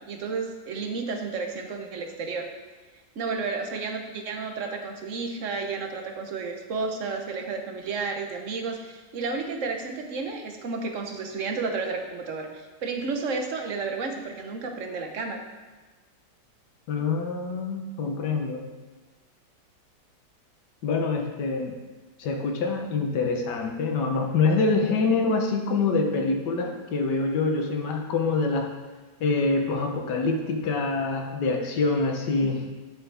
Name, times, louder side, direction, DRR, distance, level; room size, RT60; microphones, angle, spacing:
voice 1, 0.1-2.5 3.2-15.4 32.4-32.5, right 4 dB, 50° right, 4 dB, 1.3 m, -32 dB
voice 2, 16.9-18.7 20.8-21.7 22.2-28.7 29.2-32.7, left 3 dB, 75° left, 2 dB, 1.7 m, -25 dB
11.5 x 7.9 x 3.5 m, 1.3 s
omnidirectional pair, 1.9 m